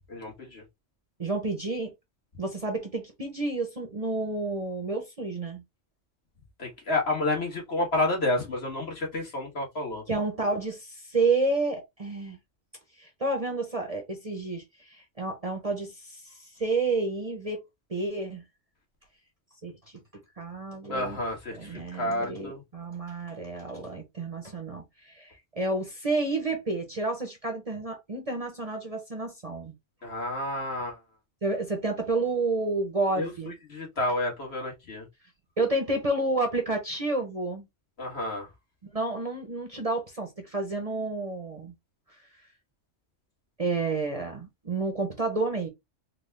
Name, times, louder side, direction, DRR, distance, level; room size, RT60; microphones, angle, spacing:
voice 1, 0.1-0.6 6.6-10.0 20.9-22.6 30.0-31.0 33.2-33.3 33.7-35.0 38.0-38.5, left 2 dB, 60° left, 1.7 m, -30 dB
voice 2, 1.2-1.9 2.4-5.6 10.1-12.4 13.0-17.6 17.9-18.4 19.6-19.8 20.4-21.2 21.5-29.7 31.4-33.5 35.6-37.7 38.9-41.7 43.6-45.7, right 3 dB, 35° right, 0.8 m, -30 dB
3.9 x 2.3 x 3.1 m
omnidirectional pair, 1.2 m